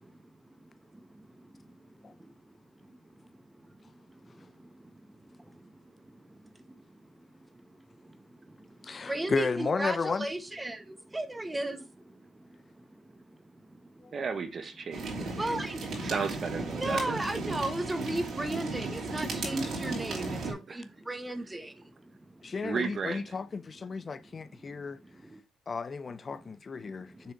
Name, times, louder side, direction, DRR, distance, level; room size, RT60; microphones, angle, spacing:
voice 1, 0.0-14.2 15.3-16.1 16.8-22.5 24.0-25.4 26.3-26.5 26.8-27.3, right 1 dB, 15° right, 1.2 m, -38 dB
voice 2, 8.8-10.3 14.0-14.1 22.4-25.0 25.7-27.3, left 4 dB, 35° left, 0.5 m, -34 dB
voice 3, 14.1-15.6 16.0-17.2 20.7-20.9 22.6-23.4, right 5 dB, 45° right, 1.2 m, -34 dB
sound 1, 14.9-20.5, right 3 dB, 65° right, 3.4 m, -35 dB
6.8 x 3.8 x 4.6 m
cardioid pair, 90°, 0 cm